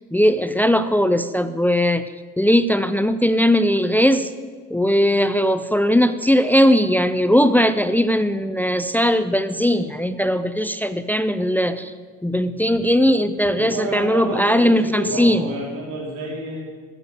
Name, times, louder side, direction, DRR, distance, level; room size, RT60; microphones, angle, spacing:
voice 1, 0.1-2.1 2.4-4.3 4.7-11.9 12.2-15.4, equal, 5° left, 11 dB, 0.5 m, -19 dB
voice 2, 13.5-16.6, right 2 dB, 90° right, -3 dB, 4.2 m, -29 dB
14.0 x 7.2 x 7.3 m, 1.5 s
cardioid pair, 90°, 30 cm